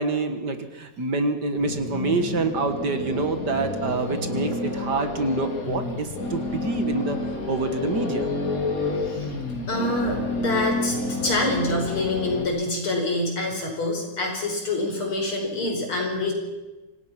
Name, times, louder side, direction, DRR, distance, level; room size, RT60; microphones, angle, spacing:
voice 1, 0.0-7.2 7.5-8.3, right 3 dB, 50° right, 8 dB, 2.1 m, -26 dB
sound 1, 1.5-12.5, left 2 dB, 40° left, 2.9 m, -29 dB
voice 2, 9.7-16.3, left 2 dB, 70° left, 2 dB, 5.9 m, -26 dB
25.5 x 18.0 x 6.0 m, 1.1 s
omnidirectional pair, 2.4 m